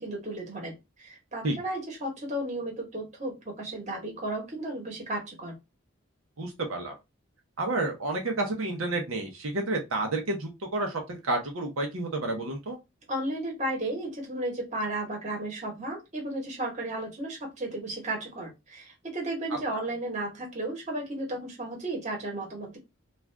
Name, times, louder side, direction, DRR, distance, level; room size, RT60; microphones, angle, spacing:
voice 1, 0.0-5.5 13.1-22.8, right 1 dB, 35° right, 0 dB, 1.1 m, -34 dB
voice 2, 6.4-7.0 7.6-12.8, right 2 dB, 80° right, 2 dB, 0.7 m, -30 dB
2.4 x 2.4 x 3.3 m, 0.22 s
head